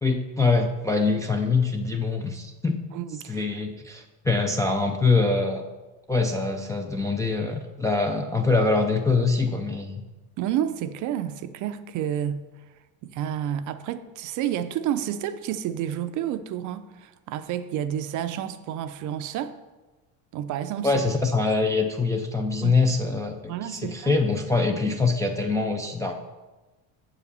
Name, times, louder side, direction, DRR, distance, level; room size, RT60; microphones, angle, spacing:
voice 1, 0.0-2.8 3.3-5.6 6.1-10.0 20.8-26.1, left 3 dB, 10° left, 0.3 m, -24 dB
voice 2, 2.9-3.5 10.4-12.5 13.0-19.6 20.3-21.0 22.6-22.8 23.5-24.2, right 10 dB, 50° right, 0.5 m, -30 dB
7.6 x 4.9 x 6.7 m
cardioid pair, 140°, 40 cm